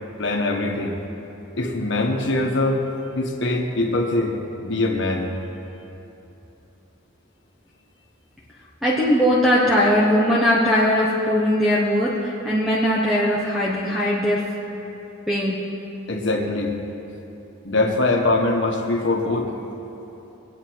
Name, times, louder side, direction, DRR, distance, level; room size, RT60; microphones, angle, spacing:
voice 1, 0.2-1.0 1.6-2.8 3.1-5.4 16.1-16.8 17.6-19.5, left 2 dB, 60° left, 1 dB, 1.5 m, -22 dB
voice 2, 8.8-14.5 15.3-15.6, equal, ahead, -6 dB, 1.1 m, -20 dB
23.0 x 8.8 x 4.7 m, 2.9 s
head